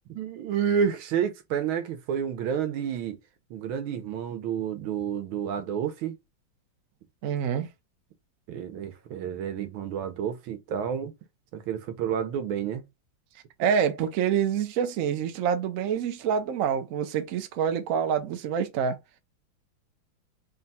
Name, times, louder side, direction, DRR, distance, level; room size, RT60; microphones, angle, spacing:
voice 1, 0.1-3.2 3.5-6.2 8.5-11.1 11.5-12.8, right 8 dB, 90° right, 1.7 m, -30 dB
voice 2, 7.2-7.7 13.6-19.0, right 7 dB, 60° right, 0.9 m, -26 dB
4.0 x 2.3 x 4.0 m
omnidirectional pair, 2.2 m